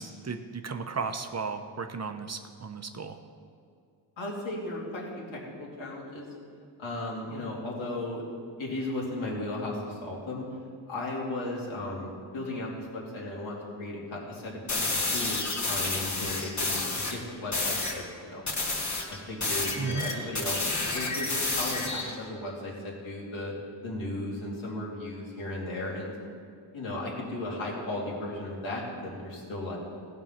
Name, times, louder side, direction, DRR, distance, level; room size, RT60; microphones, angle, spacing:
voice 1, 0.0-3.2 19.8-20.1, right 4 dB, 35° right, 7 dB, 0.7 m, -35 dB
voice 2, 4.2-6.3 6.8-8.2 8.6-10.5 10.9-18.4 19.1-20.6 20.9-23.5 23.8-26.1 26.7-29.8, left 1 dB, 85° left, -4 dB, 3.0 m, -35 dB
sound 1, 14.7-17.2 17.5-18.0 18.5-22.2, left 2 dB, 35° left, 1.8 m, -30 dB
16.0 x 5.5 x 5.8 m, 2.3 s
cardioid pair, 90°, 47 cm